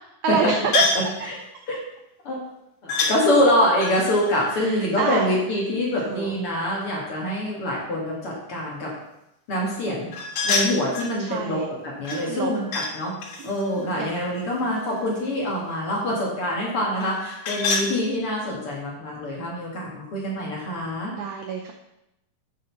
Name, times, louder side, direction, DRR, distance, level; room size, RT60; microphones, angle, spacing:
voice 1, 0.2-0.8 4.5-5.4 6.0-6.4 11.2-11.7 12.1-12.5 13.4-14.1 21.1-21.7, right 6 dB, 80° right, 3 dB, 1.7 m, -28 dB
sound 1, 0.7-1.1 2.9-3.2 3.8-5.6 10.1-11.2 12.1-12.9 13.2-15.1 17.0-17.9, left 4 dB, 80° left, 3.3 m, -27 dB
voice 2, 2.8-8.9 9.5-10.1 10.4-13.1 13.4-21.1, left 1 dB, 45° left, -3 dB, 2.2 m, -25 dB
7.7 x 6.6 x 5.8 m, 0.87 s
omnidirectional pair, 4.2 m